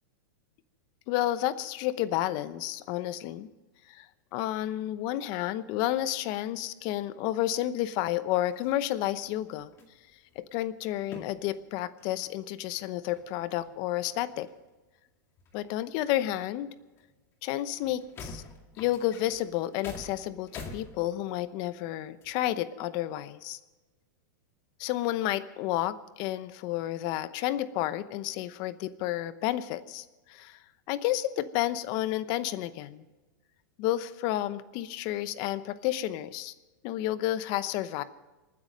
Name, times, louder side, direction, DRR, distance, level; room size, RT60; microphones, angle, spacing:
voice 1, 1.1-3.5 3.9-4.1 4.3-9.7 10.4-14.5 15.5-16.7 17.4-18.4 18.8-23.6 24.8-30.6 30.9-33.0 33.8-36.5 36.8-38.0, left 14 dB, 40° left, 14 dB, 0.8 m, -31 dB
sound 1, 8.5-9.3 9.6-10.4 11.1-11.6 12.0-12.3 12.7-12.8 13.1-14.6 15.4-16.4 17.0-17.1 17.4-17.5 17.8-21.5 22.2-22.3, left 3 dB, 25° left, 2.1 m, -47 dB
27.0 x 9.7 x 5.2 m, 1.2 s
supercardioid pair, 150°, 11 cm